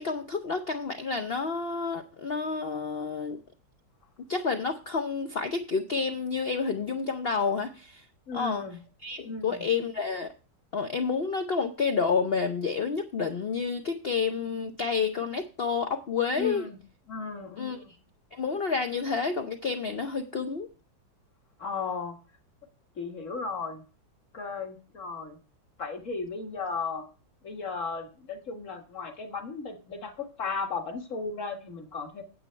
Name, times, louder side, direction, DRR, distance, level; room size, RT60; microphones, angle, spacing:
voice 1, 0.0-3.4 4.3-8.0 8.3-8.6 9.0-10.3 10.7-16.7 17.6-17.8 18.3-20.7, left 5 dB, 85° left, 6 dB, 0.5 m, -29 dB
voice 2, 8.3-8.8 9.2-9.6 16.4-16.8 17.1-17.9 21.6-22.2 23.0-23.8 24.3-25.4 25.8-27.1 27.4-32.2, left 4 dB, 45° left, 4 dB, 1.8 m, -35 dB
9.1 x 7.9 x 4.4 m, 0.35 s
omnidirectional pair, 2.0 m